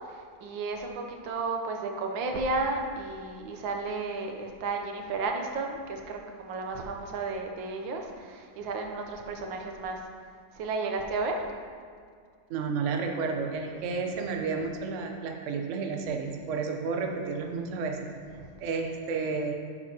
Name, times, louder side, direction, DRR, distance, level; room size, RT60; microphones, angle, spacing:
voice 1, 0.1-10.0 10.5-11.4 18.4-18.5, right 3 dB, 85° right, 3 dB, 1.6 m, -33 dB
voice 2, 12.5-18.1 18.6-19.5, right 4 dB, 55° right, 3 dB, 0.9 m, -31 dB
11.5 x 7.1 x 2.9 m, 2.1 s
omnidirectional pair, 2.0 m